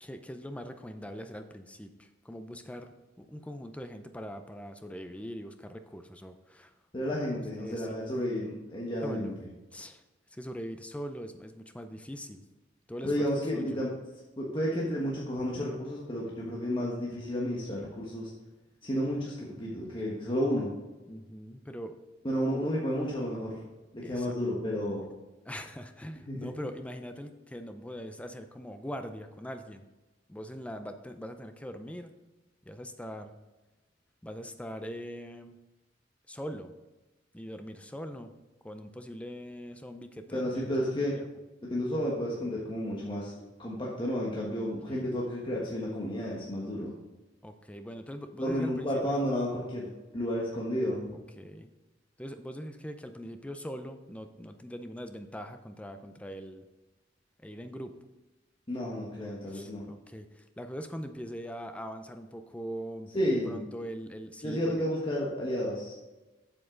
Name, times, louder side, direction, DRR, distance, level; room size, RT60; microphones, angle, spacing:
voice 1, 0.0-6.7 7.0-8.1 9.0-9.4 9.7-10.0 10.3-12.4 12.9-13.1 13.5-13.8 21.1-22.0 24.0-24.3 25.4-29.8 30.3-32.1 32.6-33.3 34.2-35.6 36.3-36.7 37.3-38.3 38.6-40.7 41.1-41.2 44.9-45.1 47.4-49.2 51.4-51.7 52.2-56.6 57.4-58.0 59.2-64.7, equal, 5° left, 8 dB, 0.5 m, -42 dB
voice 2, 6.9-9.3 13.0-13.9 14.4-18.3 18.8-20.7 22.2-23.6 23.9-25.0 26.3-26.5 40.3-41.2 41.7-43.3 43.6-46.9 48.4-51.1 58.7-59.8 63.1-63.6 64.4-65.9, equal, 25° left, -5 dB, 1.3 m, -31 dB
7.7 x 7.5 x 3.8 m, 1.1 s
head